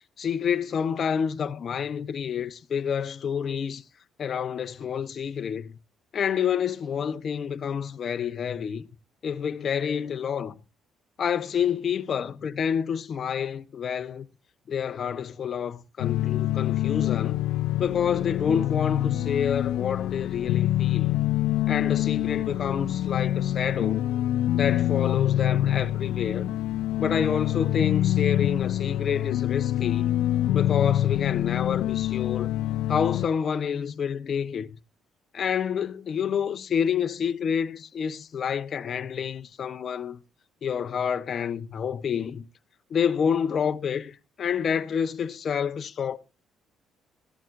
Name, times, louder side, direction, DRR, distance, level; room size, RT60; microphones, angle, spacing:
voice 1, 0.2-3.8 4.2-5.7 6.1-8.8 9.2-10.5 11.2-14.3 14.7-17.4 17.8-21.1 21.7-24.0 24.5-26.5 27.0-30.0 30.5-32.6 32.9-34.7 35.3-40.2 40.6-42.5 42.9-46.2, left 7 dB, 50° left, 0.9 m, -28 dB
sound 1, 16.0-33.3, left 13 dB, 90° left, 0.5 m, -25 dB
15.5 x 12.0 x 2.6 m
cardioid pair, 95°, 0 cm